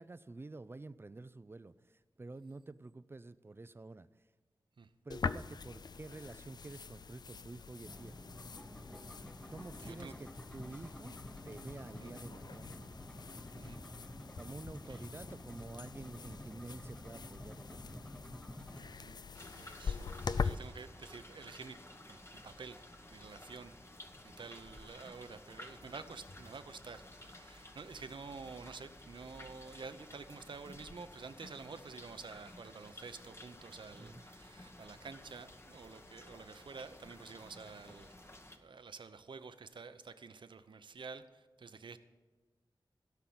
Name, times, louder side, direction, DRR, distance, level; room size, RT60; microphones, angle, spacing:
voice 1, 0.0-4.1 5.0-8.2 9.5-11.2 11.4-12.8 14.4-18.0 33.8-34.2, right 2 dB, 30° right, 15 dB, 0.4 m, -49 dB
sound 1, 5.1-20.6, left 5 dB, 55° left, 0.4 m, -43 dB
sound 2, 7.8-18.8, left 1 dB, 10° left, 1.0 m, -50 dB
voice 2, 9.8-10.1 12.0-12.1 13.6-13.8 14.9-15.0 18.8-19.2 19.6-20.0 20.3-21.8 22.1-22.8 23.1-23.8 24.2-38.1 38.6-42.0, right 4 dB, 70° right, 10 dB, 0.7 m, -49 dB
Rain with thunder, 19.3-38.6, left 1 dB, 30° left, 1.1 m, -54 dB
16.5 x 5.8 x 7.8 m, 1.3 s
wide cardioid pair, 95°, 8 cm